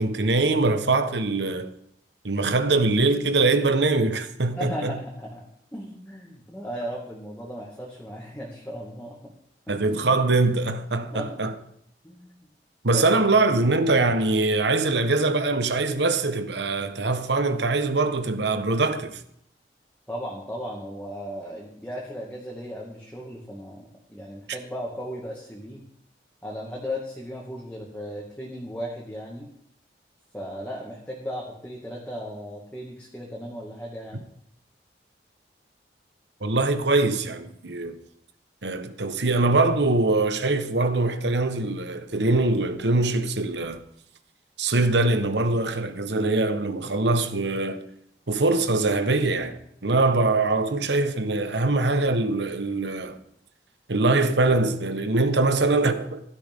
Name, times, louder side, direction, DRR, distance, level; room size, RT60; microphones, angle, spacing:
voice 1, 0.0-1.7 2.2-4.9 9.7-11.5 12.8-19.2 24.5-24.6 36.4-38.0 38.6-43.8 44.6-47.8 48.3-53.2 53.9-56.2, right 2 dB, 85° right, 1.3 m, -23 dB
voice 2, 4.5-9.3 9.7-9.8 11.0-11.4 12.0-12.4 12.9-13.0 20.1-25.8 26.4-29.5 30.3-34.2, equal, 10° left, 2.2 m, -36 dB
16.0 x 12.5 x 3.7 m
head